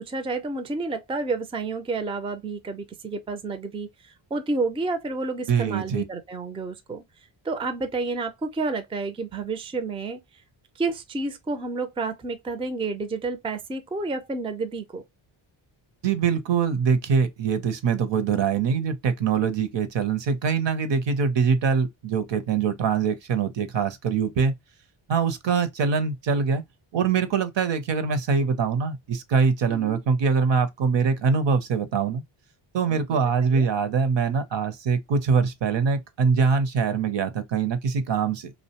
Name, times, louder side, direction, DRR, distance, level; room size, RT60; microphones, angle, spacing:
voice 1, 0.0-3.9 4.3-7.0 7.4-10.2 10.8-15.0 29.7-30.0 32.9-33.2 33.5-33.7, right 3 dB, 15° right, 0.3 m, -30 dB
voice 2, 5.5-6.0 16.0-24.5 25.1-26.6 26.9-32.2 32.7-38.5, right 5 dB, 60° right, 0.7 m, -23 dB
2.6 x 2.1 x 2.8 m
cardioid pair, 95°, 49 cm